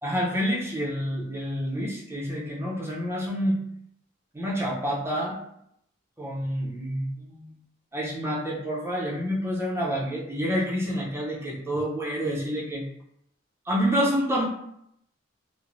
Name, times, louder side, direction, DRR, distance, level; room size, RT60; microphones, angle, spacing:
voice 1, 0.0-3.6 4.3-5.4 6.2-7.5 7.9-12.9 13.6-14.5, equal, 15° right, -5 dB, 0.6 m, -28 dB
3.1 x 2.0 x 2.5 m, 0.75 s
head